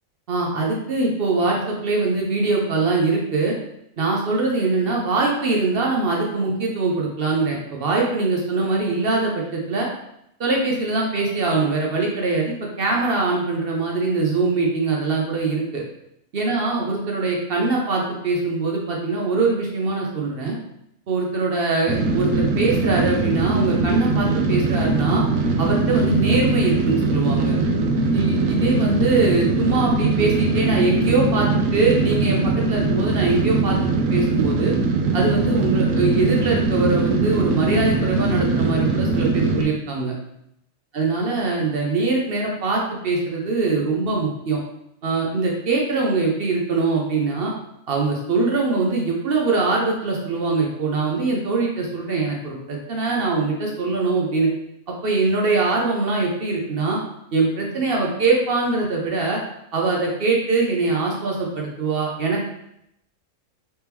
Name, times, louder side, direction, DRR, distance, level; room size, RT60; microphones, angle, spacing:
voice 1, 0.3-3.6 4.0-9.9 10.4-15.8 16.3-20.6 21.1-25.2 25.6-27.5 28.1-34.7 35.1-40.1 40.9-44.6 45.0-47.5 47.9-54.5 54.9-57.0 57.3-59.4 59.7-62.4, right 3 dB, 55° right, -1 dB, 0.8 m, -22 dB
sound 1, 21.9-39.6, right 3 dB, 90° right, 1.0 m, -21 dB
3.4 x 3.3 x 2.9 m, 0.78 s
omnidirectional pair, 1.4 m